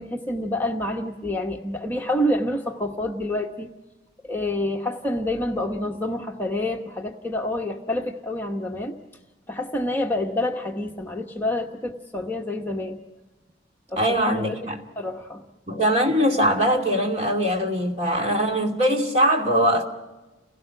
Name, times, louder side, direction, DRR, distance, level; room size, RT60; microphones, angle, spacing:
voice 1, 0.0-3.7 4.2-9.0 9.5-13.0 13.9-14.6 15.0-15.4, left 1 dB, 10° left, 1.1 m, -28 dB
voice 2, 14.0-14.8 15.7-19.8, equal, 35° right, 2.6 m, -21 dB
30.0 x 17.5 x 6.0 m
head